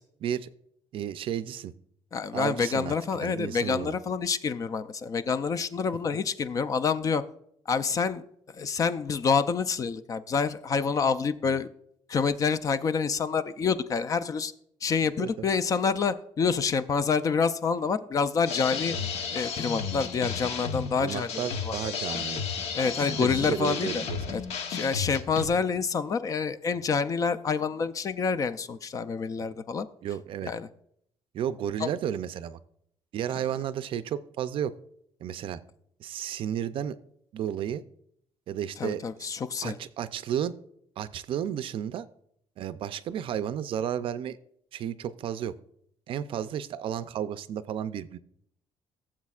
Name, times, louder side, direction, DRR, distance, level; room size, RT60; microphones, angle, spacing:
voice 1, 0.9-1.7 2.3-4.0 11.4-11.6 15.2-15.5 18.9-19.1 21.0-22.4 22.8-24.4 30.0-30.5 31.3-32.6 33.1-34.7 35.2-35.6 36.0-37.0 37.3-37.8 38.5-39.4 39.6-40.5 41.0-42.1 42.6-44.4 44.7-45.5 46.1-48.2, right 9 dB, 55° right, 13 dB, 0.4 m, -33 dB
voice 2, 2.1-7.2 7.7-8.2 8.5-11.7 12.1-14.5 14.8-18.9 19.3-21.3 21.7-21.8 22.7-24.0 24.3-24.4 24.7-29.9 30.4-30.7 31.8-31.9 38.8-39.8, left 5 dB, 30° left, 12 dB, 0.4 m, -27 dB
sound 1, 18.4-25.5, left 6 dB, 70° left, 1.0 m, -33 dB
16.5 x 7.4 x 2.4 m, 0.69 s
cardioid pair, 160°, 11 cm